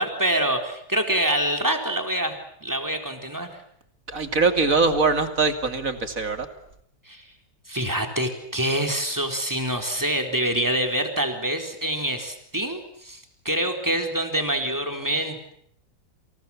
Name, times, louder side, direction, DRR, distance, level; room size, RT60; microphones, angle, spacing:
voice 1, 0.0-3.6 7.1-7.2 7.7-15.5, right 1 dB, 10° right, 5 dB, 4.1 m, -26 dB
voice 2, 4.1-6.5, right 4 dB, 45° right, 8 dB, 3.0 m, -22 dB
29.5 x 27.0 x 7.3 m, 0.70 s
omnidirectional pair, 1.9 m